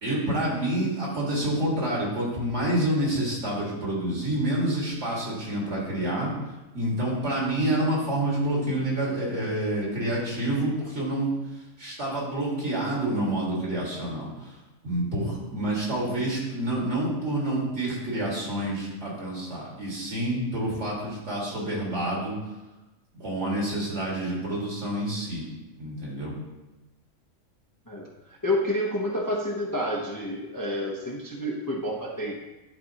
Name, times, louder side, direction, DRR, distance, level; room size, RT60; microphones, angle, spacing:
voice 1, 0.0-6.3 6.7-11.3 11.8-14.5 14.8-22.3 23.1-25.5 25.8-26.3, right 1 dB, 60° right, -4 dB, 2.2 m, -28 dB
voice 2, 27.9-32.4, left 1 dB, 20° left, -3 dB, 0.7 m, -29 dB
11.0 x 4.2 x 2.8 m, 1.1 s
omnidirectional pair, 1.3 m